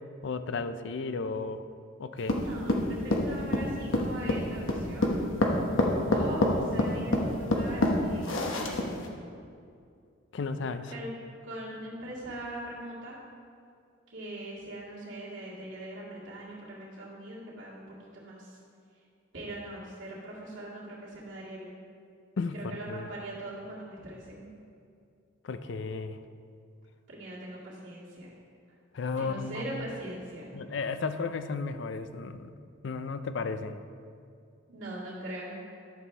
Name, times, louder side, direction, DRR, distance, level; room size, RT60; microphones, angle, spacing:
voice 1, 0.2-1.6 2.0-2.4 10.3-10.9 22.4-22.6 22.9-23.1 25.4-26.2 28.9-29.6 30.5-32.6 32.8-33.8, left 4 dB, 60° left, 10 dB, 0.4 m, -34 dB
voice 2, 2.2-5.4 6.1-8.8 10.9-11.1 11.4-13.2 14.1-18.6 19.3-21.8 22.5-24.5 27.1-28.3 29.2-30.5 34.7-35.6, right 1 dB, 70° right, -7 dB, 2.1 m, -41 dB
sound 1, 2.3-9.1, left 1 dB, 80° left, 1.0 m, -26 dB
11.0 x 7.1 x 3.3 m, 2.4 s
head